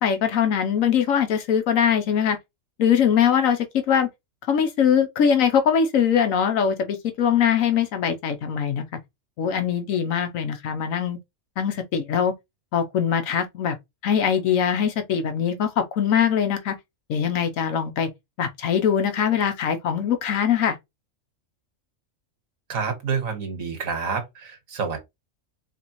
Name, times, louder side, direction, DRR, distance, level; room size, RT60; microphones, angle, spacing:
voice 1, 0.0-2.4 2.8-4.1 4.5-8.8 9.4-11.2 11.6-12.3 12.7-13.7 14.0-16.8 17.1-18.1 18.4-20.8, left 8 dB, 85° left, 1.1 m, -22 dB
voice 2, 22.7-25.0, right 5 dB, 90° right, 1.7 m, -28 dB
4.2 x 3.4 x 2.9 m
omnidirectional pair, 1.4 m